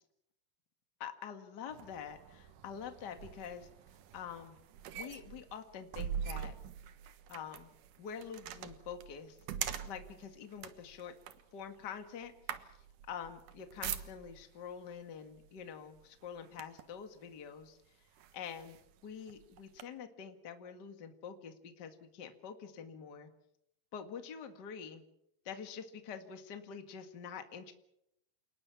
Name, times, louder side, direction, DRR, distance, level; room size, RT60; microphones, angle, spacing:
voice 1, 1.0-3.7 4.1-4.6 4.9-6.5 7.3-7.7 8.0-9.4 9.8-11.2 11.5-12.3 13.1-18.0 18.3-18.8 19.0-23.3 23.9-25.0 25.4-27.7, left 7 dB, 40° left, 7 dB, 2.0 m, -46 dB
sound 1, 1.7-14.5 15.4-15.6 16.0-17.0 17.6-17.7 18.2-19.8, right 9 dB, 75° right, 2.7 m, -44 dB
28.5 x 20.0 x 5.9 m, 0.77 s
omnidirectional pair, 3.8 m